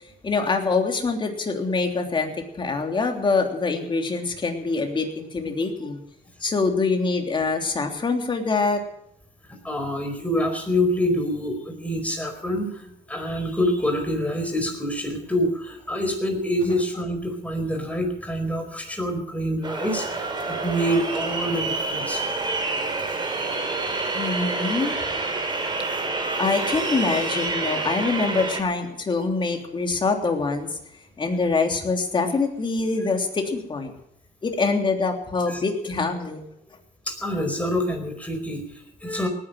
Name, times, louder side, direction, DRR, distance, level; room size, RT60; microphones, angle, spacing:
voice 1, 0.2-6.0 6.4-8.8 24.1-25.0 26.4-30.8 31.2-33.9 34.4-36.4, left 4 dB, 30° left, 4 dB, 3.2 m, -24 dB
voice 2, 9.5-22.2 25.6-25.7 35.5-35.6 37.1-39.3, equal, 10° left, 4 dB, 4.8 m, -26 dB
sound 1, 19.6-28.6, right 3 dB, 25° right, 3.2 m, -28 dB
19.0 x 9.8 x 7.8 m, 0.76 s
cardioid pair, 110°, 17 cm